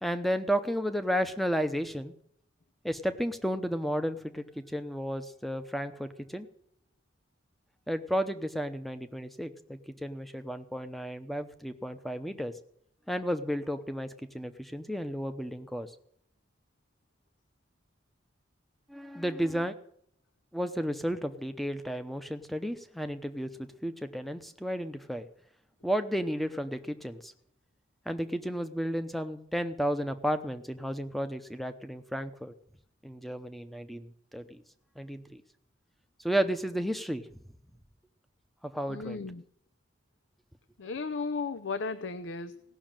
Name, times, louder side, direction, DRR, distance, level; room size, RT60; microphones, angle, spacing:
voice 1, 0.0-2.1 2.8-6.5 7.9-12.5 13.1-15.9 18.9-19.7 20.5-25.3 25.8-27.3 28.1-32.5 33.0-34.6 35.0-35.4 36.2-37.2 38.6-39.2, equal, ahead, 9 dB, 0.8 m, -33 dB
voice 2, 38.9-39.4 40.8-42.6, left 4 dB, 85° left, 11 dB, 0.6 m, -35 dB
17.0 x 6.3 x 9.0 m, 0.69 s
head